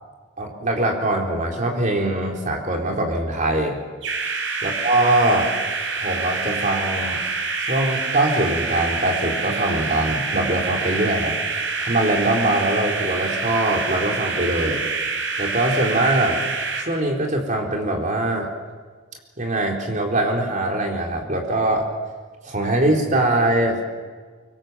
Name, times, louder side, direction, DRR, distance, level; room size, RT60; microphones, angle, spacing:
voice 1, 0.4-3.8 4.6-5.5 6.0-7.2 7.7-11.3 11.8-14.9 15.4-16.4 16.8-18.5 19.4-21.9 22.4-23.8, right 1 dB, 40° right, 0 dB, 4.1 m, -22 dB
sound 1, 4.0-16.8, right 4 dB, 70° right, 3.9 m, -26 dB
24.5 x 24.5 x 7.6 m, 1.5 s
head